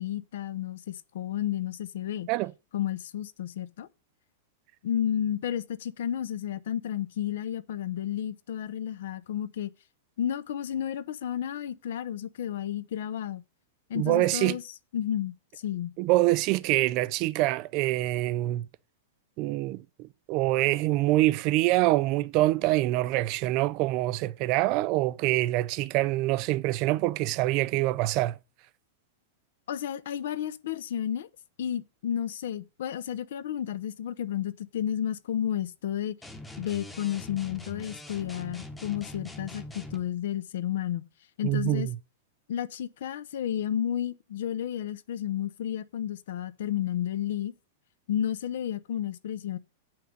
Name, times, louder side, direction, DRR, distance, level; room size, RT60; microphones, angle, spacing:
voice 1, 0.0-2.3 2.7-3.9 4.8-9.7 10.2-13.4 13.9-14.6 14.9-15.9 29.7-31.3 31.6-36.2 36.6-41.1 41.4-41.9 42.5-47.5 48.1-49.6, left 10 dB, 70° left, 0.9 m, -32 dB
voice 2, 13.9-14.6 16.0-18.6 19.4-28.4 41.4-41.9, right 17 dB, 35° right, 0.5 m, -25 dB
sound 1, 36.2-40.1, left 2 dB, 5° left, 1.1 m, -43 dB
8.8 x 5.8 x 6.7 m
supercardioid pair, 165°, 0 cm